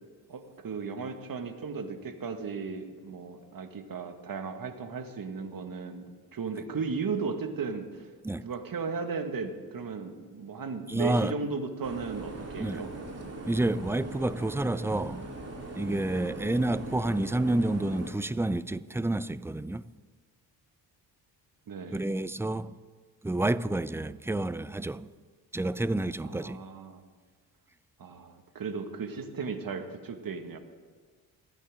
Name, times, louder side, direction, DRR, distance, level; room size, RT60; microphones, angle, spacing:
voice 1, 0.3-6.0 6.3-8.1 8.4-12.9 16.2-16.4 21.7-22.1 26.2-27.0 28.0-30.6, right 5 dB, 50° right, 1.9 m, -36 dB
voice 2, 10.9-11.3 12.6-12.9 13.5-15.3 15.7-19.8 21.9-22.7 23.2-25.1 25.5-26.6, right 2 dB, 5° right, 0.5 m, -29 dB
sound 1, 11.8-18.1, right 2 dB, 35° right, 2.8 m, -41 dB
27.0 x 10.0 x 3.8 m
supercardioid pair, 50°, 45 cm